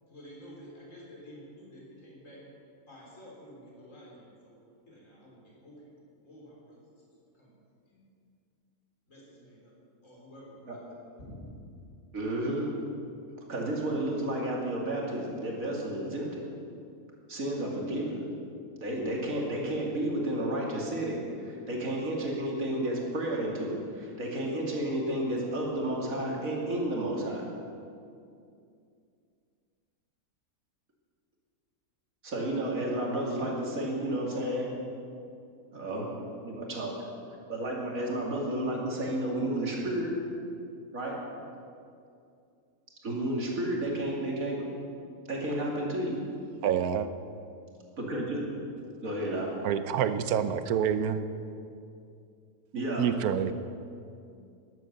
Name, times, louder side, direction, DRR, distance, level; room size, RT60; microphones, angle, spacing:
voice 1, 0.1-2.5 2.9-4.6 4.9-5.9 6.2-6.8 7.3-7.5 7.9-8.1 9.1-9.7 10.0-11.3, equal, 60° left, 4.0 m, -50 dB
voice 2, 12.1-12.7 13.5-16.4 17.3-18.2 18.8-27.4 32.2-34.7 35.7-36.1 36.4-36.9 37.5-40.2 40.9-41.2 43.0-44.7 45.3-46.2 48.0-48.4 49.0-49.5 52.7-53.1, right 1 dB, 65° right, 2.9 m, -31 dB
voice 3, 46.6-47.1 49.6-51.2 53.0-53.5, right 8 dB, 85° right, 1.2 m, -27 dB
13.5 x 11.0 x 6.6 m
omnidirectional pair, 1.5 m